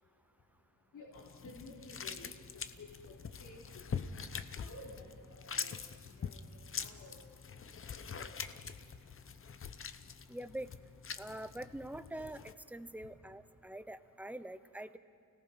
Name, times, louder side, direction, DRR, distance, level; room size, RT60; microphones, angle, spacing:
voice 1, 0.9-4.1 4.6-5.7 6.2-7.2 8.1-8.3, left 2 dB, 60° left, -6 dB, 3.6 m, -53 dB
sound 1, 1.1-12.5, left 6 dB, 40° left, 0.7 m, -44 dB
voice 2, 10.3-10.7 11.2-15.0, right 1 dB, 5° right, 12 dB, 0.6 m, -45 dB
29.5 x 18.0 x 5.7 m, 2.7 s
wide cardioid pair, 150°, 34 cm